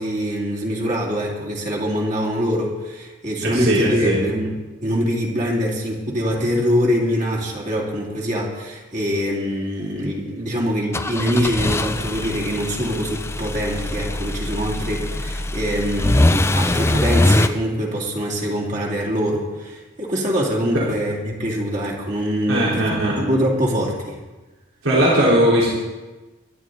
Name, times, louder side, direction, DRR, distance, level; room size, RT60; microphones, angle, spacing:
voice 1, 0.0-22.9 23.2-24.2, equal, 35° right, -2 dB, 2.6 m, -24 dB
voice 2, 3.4-4.2 20.7-20.9 22.5-23.2 24.8-25.7, right 1 dB, 80° right, -6 dB, 4.2 m, -18 dB
sound 1, 10.9-17.5, left 1 dB, 15° left, 0.4 m, -22 dB
23.5 x 11.0 x 3.9 m, 1.2 s
head